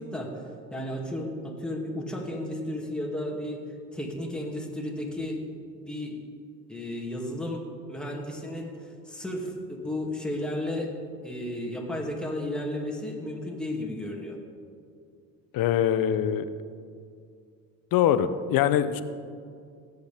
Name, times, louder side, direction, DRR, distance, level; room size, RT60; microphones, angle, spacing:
voice 1, 0.0-3.6 3.9-5.4 5.7-6.2 6.7-10.9 11.2-14.4, left 1 dB, ahead, -1 dB, 2.3 m, -33 dB
voice 2, 15.5-16.5 17.9-19.0, left 10 dB, 60° left, 12 dB, 0.8 m, -23 dB
18.0 x 8.0 x 3.5 m, 2.3 s
supercardioid pair, 80°, 39 cm